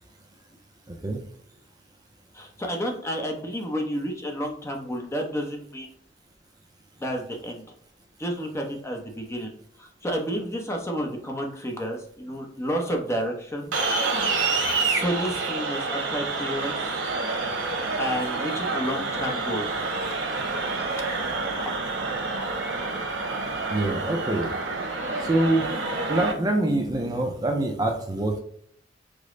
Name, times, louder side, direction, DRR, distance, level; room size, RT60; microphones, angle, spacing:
voice 1, 0.9-1.2 23.7-24.5 25.2-25.8 26.1-28.4, right 1 dB, 20° right, 2 dB, 0.5 m, -25 dB
voice 2, 2.3-5.9 7.0-7.7 8.2-9.5 9.8-13.7 14.8-16.9 18.0-19.9, equal, 15° left, 2 dB, 0.7 m, -30 dB
sound 1, 13.7-26.3, right 3 dB, 90° right, 0.9 m, -28 dB
5.0 x 2.1 x 3.7 m, 0.65 s
head